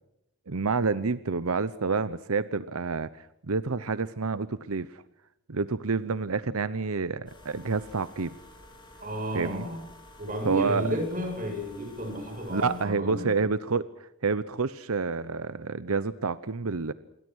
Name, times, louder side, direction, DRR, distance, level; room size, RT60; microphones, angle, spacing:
voice 1, 0.5-5.0 5.5-8.4 9.3-9.7 10.4-10.9 12.5-16.9, right 4 dB, 85° right, 15 dB, 0.9 m, -29 dB
sound 1, 7.3-12.9, left 1 dB, 20° left, 7.0 m, -51 dB
voice 2, 9.0-9.8 10.2-13.3, right 1 dB, 40° right, 4 dB, 7.9 m, -32 dB
28.0 x 23.0 x 6.4 m, 0.80 s
head